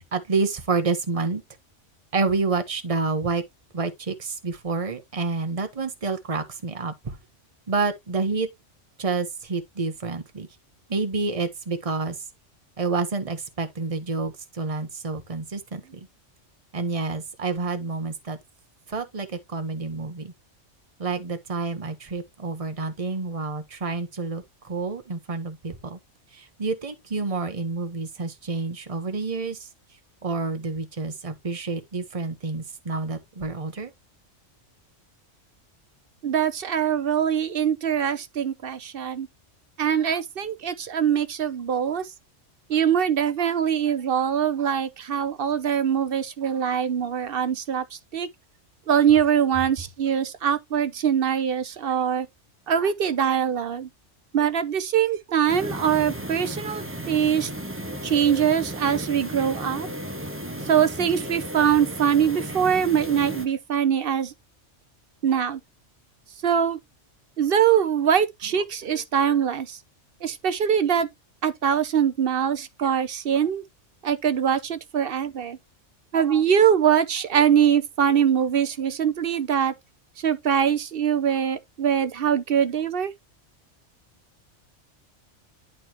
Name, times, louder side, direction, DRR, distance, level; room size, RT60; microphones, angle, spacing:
voice 1, 0.0-1.4 2.1-3.4 3.7-7.2 7.7-8.5 9.0-10.5 10.9-12.2 12.8-16.1 16.7-18.4 18.9-20.3 21.0-26.0 26.3-29.7 30.2-33.9, right 4 dB, 30° right, 1.2 m, -28 dB
voice 2, 36.2-39.3 39.8-42.1 42.7-47.8 48.1-48.3 48.9-52.3 52.7-53.9 54.3-57.5 58.0-59.9 60.7-64.3 65.2-65.6 66.4-66.8 67.4-69.8 70.2-71.1 71.4-73.6 74.0-75.6 76.1-79.7 80.2-83.1, right 8 dB, 55° right, 0.9 m, -23 dB
sound 1, 55.5-63.5, right 1 dB, 10° right, 1.0 m, -34 dB
11.0 x 4.3 x 3.0 m
omnidirectional pair, 1.3 m